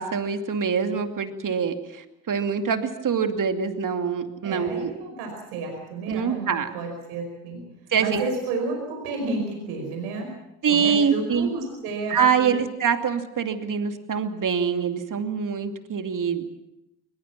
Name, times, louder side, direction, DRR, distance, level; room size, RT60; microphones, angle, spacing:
voice 1, 0.0-4.9 6.1-6.7 7.9-8.2 10.6-11.5 12.1-16.5, right 6 dB, 45° right, 7 dB, 2.6 m, -25 dB
voice 2, 4.4-7.6 8.0-10.3 10.7-12.6, right 3 dB, 85° right, 2 dB, 5.3 m, -31 dB
22.0 x 21.0 x 7.4 m, 0.89 s
hypercardioid pair, 60°, 43 cm